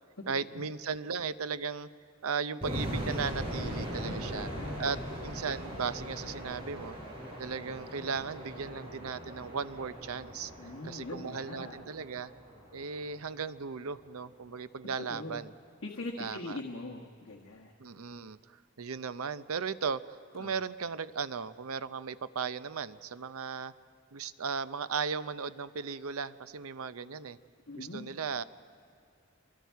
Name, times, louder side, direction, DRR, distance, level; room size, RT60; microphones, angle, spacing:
voice 1, 0.3-1.9 2.2-4.5 4.8-7.0 7.4-10.5 10.8-12.3 12.7-15.5 16.2-16.6 17.8-18.4 18.8-20.0 20.3-23.7 24.1-27.4 27.7-28.4, right 5 dB, 85° right, 14 dB, 0.6 m, -36 dB
sound 1, 2.6-13.5, equal, 25° right, 4.5 m, -40 dB
voice 2, 4.0-4.8 10.6-11.8 15.0-15.4 15.8-17.7 20.4-20.5 27.7-28.1, left 2 dB, 70° left, -1 dB, 1.4 m, -42 dB
29.0 x 23.5 x 4.6 m, 2.4 s
head